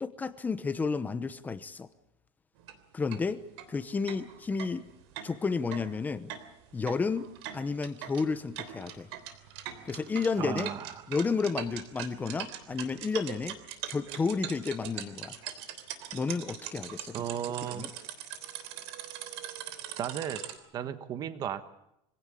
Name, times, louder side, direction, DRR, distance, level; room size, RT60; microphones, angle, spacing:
voice 1, 0.0-1.9 2.9-3.4 3.7-4.8 5.2-6.3 6.7-7.3 7.5-9.1 9.8-10.7 11.1-13.6 13.9-15.4 16.1-17.1 17.7-17.9, left 4 dB, 10° left, 13 dB, 0.9 m, -31 dB
sound 1, 2.6-2.7 3.1-3.2 3.6-3.7 4.1-20.6, right 10 dB, 75° right, 3.3 m, -41 dB
voice 2, 10.4-11.1 17.1-17.9 20.0-20.4 20.7-21.6, right 9 dB, 30° right, 11 dB, 1.2 m, -34 dB
25.0 x 17.0 x 8.5 m, 0.83 s
supercardioid pair, 165°, 14 cm